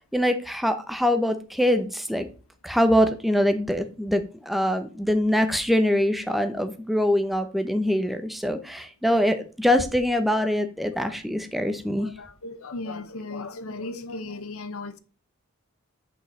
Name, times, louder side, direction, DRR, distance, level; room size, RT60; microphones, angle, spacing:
voice 1, 0.0-2.3 2.6-12.1, equal, ahead, 0.7 m, -24 dB
voice 2, 9.1-9.4 10.4-10.5 11.0-11.2 11.6-15.0, left 3 dB, 70° left, 0.7 m, -37 dB
6.6 x 5.4 x 4.1 m
head